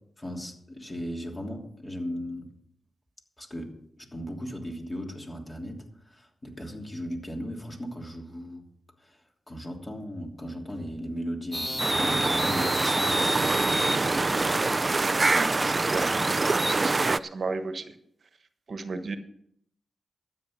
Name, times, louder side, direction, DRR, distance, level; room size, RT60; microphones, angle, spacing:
voice 1, 0.2-2.5 3.4-8.6 9.0-13.7, equal, 25° left, 1 dB, 3.1 m, -37 dB
sound 1, 11.5-16.8, equal, 5° left, 1.5 m, -31 dB
sound 2, 11.8-17.2, right 3 dB, 40° right, 0.4 m, -25 dB
voice 2, 15.3-16.1 16.6-17.9 18.7-19.2, right 3 dB, 60° right, 8 dB, 1.3 m, -33 dB
13.0 x 8.8 x 6.4 m, 0.70 s
cardioid pair, 70°, 0 cm